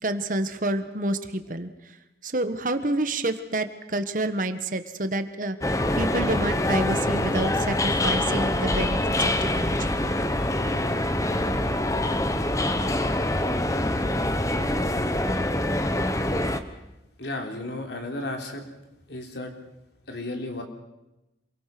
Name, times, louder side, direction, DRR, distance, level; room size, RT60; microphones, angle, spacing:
voice 1, 0.0-2.0 2.2-10.0 10.4-10.5, right 1 dB, 45° right, 10 dB, 1.5 m, -29 dB
sound 1, 5.6-16.6, left 1 dB, 20° left, 1.2 m, -25 dB
voice 2, 17.2-18.6 19.1-19.5 20.1-20.6, left 2 dB, 70° left, 3 dB, 3.7 m, -33 dB
27.5 x 22.5 x 6.1 m, 0.95 s
head